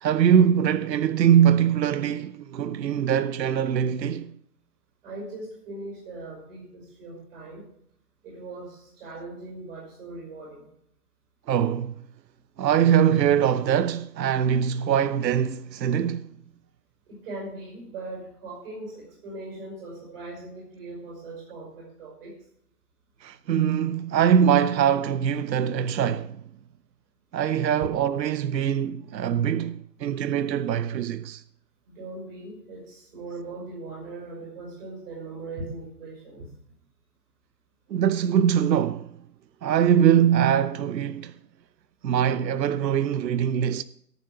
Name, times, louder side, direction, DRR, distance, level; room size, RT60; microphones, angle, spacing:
voice 1, 0.0-4.3 11.5-12.0 12.6-16.3 23.2-26.4 27.3-31.4 37.9-39.2 39.6-41.3 42.0-43.8, right 9 dB, 80° right, 0.7 m, -22 dB
voice 2, 5.0-7.6 8.2-10.7 17.1-22.3 31.9-36.5, right 2 dB, 35° right, 5.6 m, -39 dB
13.5 x 6.9 x 6.1 m
hypercardioid pair, 165°, 50 cm